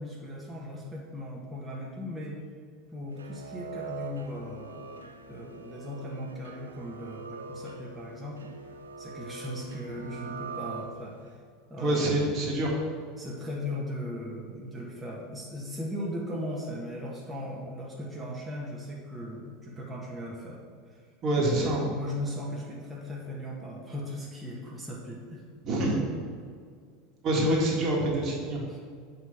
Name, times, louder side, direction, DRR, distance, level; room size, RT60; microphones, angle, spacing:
voice 1, 0.0-2.4 2.9-4.9 5.3-8.5 9.0-11.4 11.7-12.0 13.2-20.6 20.9-21.0 21.4-25.4 28.7-28.8, left 1 dB, 10° right, -5 dB, 1.5 m, -38 dB
sound 1, 3.1-11.3, right 4 dB, 90° right, 0.4 m, -43 dB
voice 2, 11.8-12.8 21.2-21.9 25.6-26.0 27.2-28.6, right 1 dB, 40° right, -2 dB, 1.7 m, -26 dB
8.0 x 3.2 x 5.6 m, 2.1 s
hypercardioid pair, 85°, 0 cm